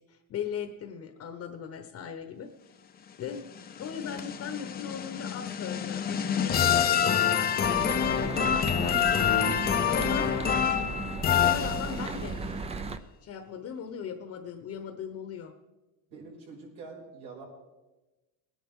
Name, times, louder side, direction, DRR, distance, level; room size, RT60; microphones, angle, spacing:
voice 1, 0.0-2.5 3.2-3.4 3.8-9.3 9.9-10.5 11.4-12.4 13.2-15.5, left 7 dB, 40° left, 6 dB, 1.0 m, -39 dB
sound 1, 3.3-12.3, left 8 dB, 25° left, 0.6 m, -27 dB
sound 2, 7.6-13.0, right 3 dB, 15° right, 0.5 m, -35 dB
voice 2, 16.1-17.5, right 4 dB, 75° right, -3 dB, 5.7 m, -45 dB
20.5 x 10.5 x 3.7 m, 1.1 s
cardioid pair, 150°, 37 cm